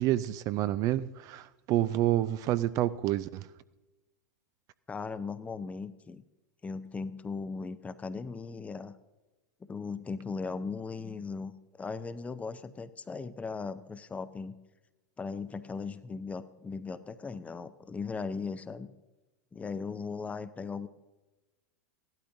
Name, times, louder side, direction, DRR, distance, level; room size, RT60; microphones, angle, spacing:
voice 1, 0.0-3.5, right 14 dB, 40° right, 0.4 m, -28 dB
voice 2, 4.9-6.2 6.6-8.9 9.6-11.5 11.8-14.5 15.2-18.9 19.5-20.9, left 4 dB, 15° left, 0.6 m, -38 dB
17.0 x 12.0 x 2.6 m
figure-of-eight pair, 95°, 9 cm